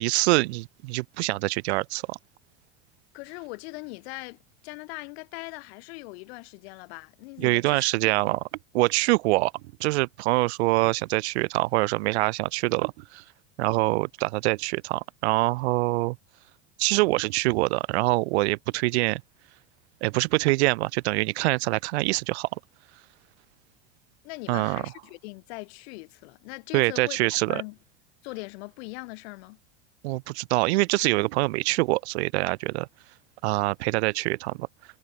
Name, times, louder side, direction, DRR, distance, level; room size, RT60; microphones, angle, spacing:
voice 1, 0.0-2.2 7.4-8.4 8.7-9.5 9.8-13.2 13.6-16.2 16.8-19.2 20.0-22.5 24.5-24.8 26.7-27.6 30.0-32.9 33.4-34.7, right 22 dB, 75° right, 0.5 m, -24 dB
voice 2, 3.1-8.1 24.2-27.8 28.2-29.6, left 26 dB, 70° left, 1.5 m, -41 dB
hypercardioid pair, 95°, 34 cm